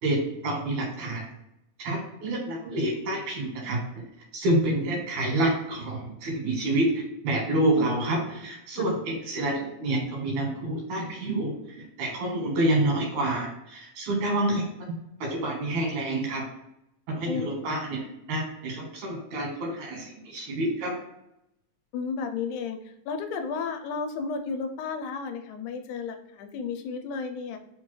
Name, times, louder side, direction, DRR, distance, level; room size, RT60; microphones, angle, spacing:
voice 1, 0.0-1.3 1.8-3.8 4.3-6.9 7.2-14.6 15.2-16.4 17.1-18.0 18.3-20.9, right 1 dB, 85° right, -1 dB, 2.7 m, -28 dB
voice 2, 7.8-8.1 8.8-8.9 17.3-17.7 21.9-27.6, left 5 dB, 85° left, 6 dB, 1.9 m, -33 dB
5.3 x 2.2 x 3.0 m, 0.83 s
omnidirectional pair, 3.3 m